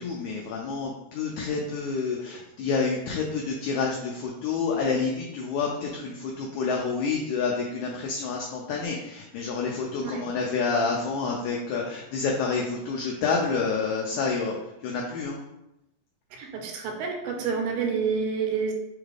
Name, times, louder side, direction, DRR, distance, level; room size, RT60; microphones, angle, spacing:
voice 1, 0.0-14.5 14.8-15.4, left 4 dB, 85° left, -1 dB, 1.7 m, -28 dB
voice 2, 16.4-18.7, right 5 dB, 85° right, 2 dB, 2.5 m, -28 dB
6.8 x 2.4 x 3.2 m, 0.89 s
omnidirectional pair, 4.1 m